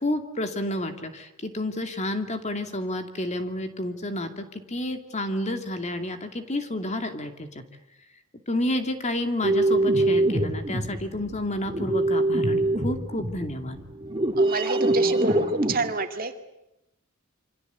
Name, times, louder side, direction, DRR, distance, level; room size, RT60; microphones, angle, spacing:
voice 1, 0.0-7.6 8.5-13.8, left 1 dB, 30° left, 7 dB, 2.5 m, -30 dB
sound 1, 9.4-15.8, right 2 dB, 25° right, 2.8 m, -24 dB
voice 2, 14.4-16.3, right 2 dB, 40° right, 6 dB, 2.4 m, -28 dB
27.5 x 25.5 x 8.3 m, 0.87 s
head